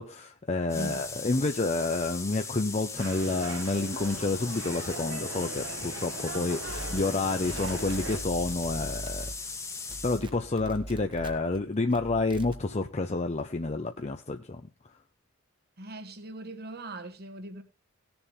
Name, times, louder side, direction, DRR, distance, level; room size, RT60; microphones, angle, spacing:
voice 1, 0.0-9.3 10.0-14.6, left 3 dB, 30° left, 0.7 m, -29 dB
sound 1, 0.7-10.2, left 4 dB, 15° left, 1.3 m, -39 dB
voice 2, 0.7-1.0 15.8-17.6, right 1 dB, 50° right, 1.6 m, -40 dB
sound 2, 3.0-8.2, right 3 dB, 70° right, 1.7 m, -40 dB
sound 3, 6.6-9.6 9.9-11.6 11.9-12.6, right 1 dB, 25° right, 1.2 m, -41 dB
18.0 x 7.0 x 3.7 m
head